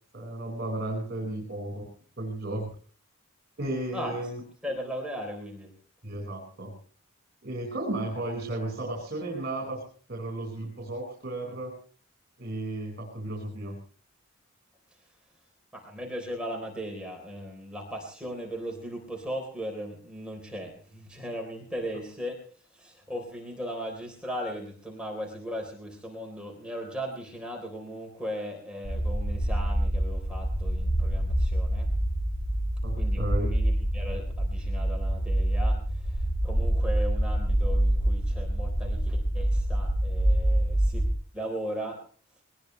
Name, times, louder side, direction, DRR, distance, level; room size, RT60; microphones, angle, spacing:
voice 1, 0.1-1.9 2.2-2.7 3.6-4.4 6.0-6.7 7.4-9.8 10.1-11.7 12.4-13.8 32.8-33.5, right 1 dB, 50° right, 1 dB, 5.1 m, -34 dB
voice 2, 4.6-5.7 15.7-22.4 22.7-31.9 33.0-41.0 41.3-42.0, equal, 5° right, 0 dB, 3.8 m, -37 dB
sound 1, 28.8-41.1, right 1 dB, 55° left, 6.3 m, -26 dB
21.5 x 20.0 x 3.3 m, 0.43 s
head